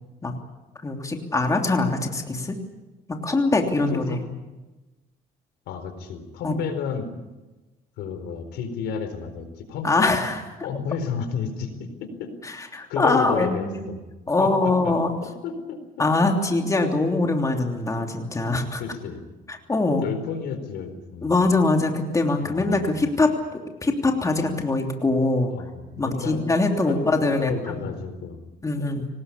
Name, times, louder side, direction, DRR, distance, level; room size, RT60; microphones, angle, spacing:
voice 1, 0.8-2.6 3.2-4.2 6.4-6.6 9.8-10.4 12.4-13.9 14.3-15.1 16.0-18.8 19.5-20.0 21.2-25.5 26.0-27.8 28.6-29.1, left 2 dB, 20° left, 3 dB, 3.1 m, -23 dB
voice 2, 3.9-4.4 5.7-7.1 8.0-10.2 10.6-12.3 12.9-14.0 14.4-14.9 15.2-15.8 18.8-19.2 20.0-21.4 22.4-22.9 25.5-26.4 26.9-28.4, left 6 dB, 85° left, 9 dB, 4.2 m, -31 dB
24.0 x 19.5 x 8.5 m, 1.1 s
cardioid pair, 110°, 17 cm